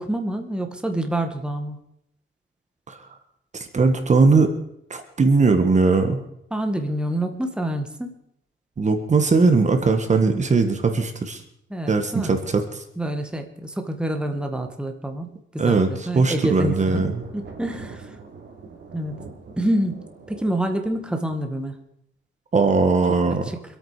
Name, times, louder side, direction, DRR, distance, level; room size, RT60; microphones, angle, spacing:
voice 1, 0.0-1.8 6.5-8.1 11.7-12.4 13.0-18.1 18.9-19.1 19.6-21.8, right 1 dB, 5° right, 5 dB, 1.9 m, -27 dB
voice 2, 3.5-4.5 4.9-6.2 8.8-11.4 11.9-12.8 15.6-17.2 22.5-23.4, right 4 dB, 35° right, 7 dB, 1.8 m, -19 dB
sound 1, 16.4-21.4, right 4 dB, 60° right, 3.4 m, -43 dB
26.0 x 8.9 x 5.1 m, 0.77 s
cardioid pair, 105°, 20 cm